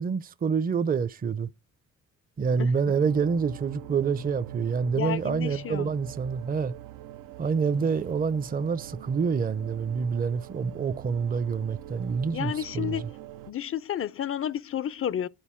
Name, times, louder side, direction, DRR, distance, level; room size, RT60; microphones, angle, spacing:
voice 1, 0.0-1.5 2.4-6.7 7.4-13.1, right 5 dB, 25° right, 0.5 m, -27 dB
sound 1, 2.9-13.5, right 13 dB, 90° right, 0.5 m, -44 dB
voice 2, 4.9-5.9 12.3-13.0 13.5-15.3, left 10 dB, 45° left, 0.5 m, -31 dB
9.3 x 4.0 x 4.3 m
supercardioid pair, 60°, 32 cm